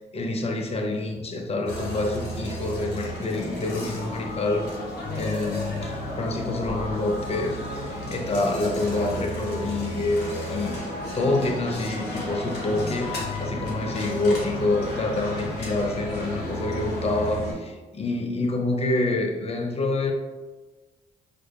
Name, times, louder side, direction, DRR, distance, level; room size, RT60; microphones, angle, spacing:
voice 1, 0.1-4.7 5.2-10.7 11.1-20.1, left 2 dB, 35° left, 3 dB, 0.6 m, -27 dB
sound 1, 1.7-17.5, left 1 dB, 75° left, 0.8 m, -32 dB
4.9 x 2.2 x 2.3 m, 1.2 s
supercardioid pair, 55°, 17 cm